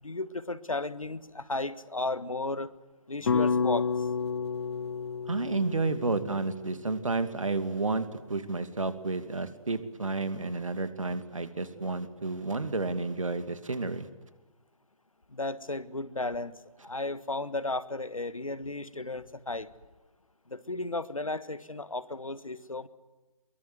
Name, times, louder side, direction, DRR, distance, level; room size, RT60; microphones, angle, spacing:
voice 1, 0.0-2.7 3.1-4.1 15.3-16.6 16.8-19.7 20.5-22.9, left 2 dB, 80° left, 15 dB, 1.6 m, -34 dB
sound 1, 3.3-7.5, left 5 dB, 55° left, 1.3 m, -31 dB
voice 2, 5.3-14.1, right 3 dB, 70° right, 11 dB, 2.5 m, -31 dB
23.0 x 22.5 x 9.6 m, 1.2 s
figure-of-eight pair, 140°, 17 cm